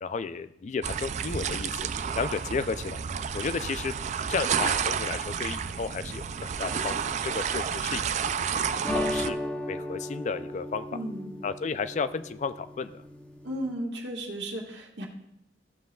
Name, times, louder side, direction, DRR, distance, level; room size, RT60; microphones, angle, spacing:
voice 1, 0.0-1.8 2.2-3.0 3.3-3.9 4.3-8.1 8.6-9.4 9.7-10.9 11.4-12.9, left 5 dB, 40° left, 12 dB, 0.3 m, -33 dB
sound 1, 0.8-9.3, right 7 dB, 40° right, 0.3 m, -30 dB
sound 2, 8.8-13.7, left 1 dB, 5° left, 0.7 m, -35 dB
voice 2, 10.9-11.3 13.4-15.1, right 1 dB, 70° right, 0 dB, 1.6 m, -34 dB
13.5 x 7.6 x 2.3 m, 0.80 s
head